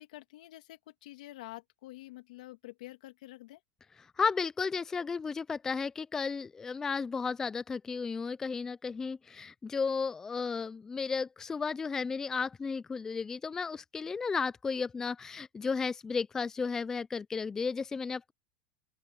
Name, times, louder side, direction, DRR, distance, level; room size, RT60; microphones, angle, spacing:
voice 1, 0.0-3.6, left 17 dB, 75° left, 2.4 m, -48 dB
voice 2, 4.2-18.3, left 5 dB, 10° left, 0.3 m, -33 dB
open air
supercardioid pair, 150°, 4 cm